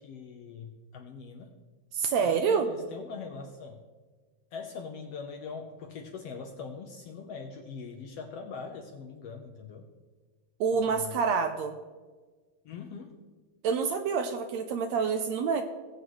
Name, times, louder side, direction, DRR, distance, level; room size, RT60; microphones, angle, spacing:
voice 1, 0.0-1.5 2.2-3.8 4.5-9.8 10.9-11.2 12.6-13.2, left 5 dB, 75° left, 4 dB, 1.5 m, -42 dB
voice 2, 1.9-2.7 10.6-11.7 13.6-15.6, right 5 dB, 80° right, 7 dB, 1.7 m, -27 dB
19.0 x 8.0 x 3.1 m, 1.4 s
omnidirectional pair, 3.5 m